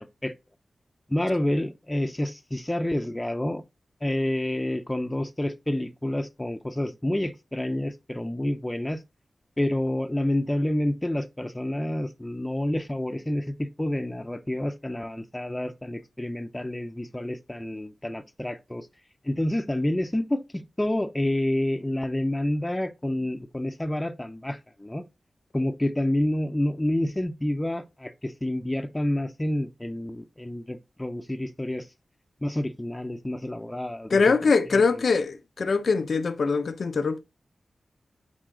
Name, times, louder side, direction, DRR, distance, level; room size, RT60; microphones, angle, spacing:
voice 1, 1.1-3.6 4.0-9.0 9.6-18.9 19.2-25.0 25.5-31.9 32.4-34.3 34.7-34.8, left 1 dB, 15° left, 0.7 m, -28 dB
voice 2, 34.1-37.2, left 4 dB, 70° left, 0.7 m, -23 dB
9.0 x 3.7 x 3.8 m
wide cardioid pair, 75°, 0 cm